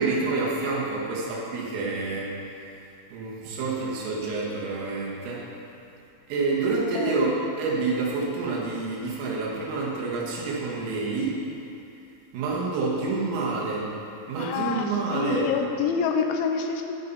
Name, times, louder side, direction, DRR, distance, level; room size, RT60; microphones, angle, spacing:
voice 1, 0.0-2.4 3.1-5.5 6.3-11.4 12.3-13.9 14.3-15.5, right 3 dB, 85° right, -4 dB, 4.1 m, -28 dB
voice 2, 14.4-14.9 15.1-16.9, left 6 dB, 80° left, 4 dB, 2.9 m, -27 dB
15.5 x 5.7 x 4.0 m, 2.7 s
omnidirectional pair, 5.6 m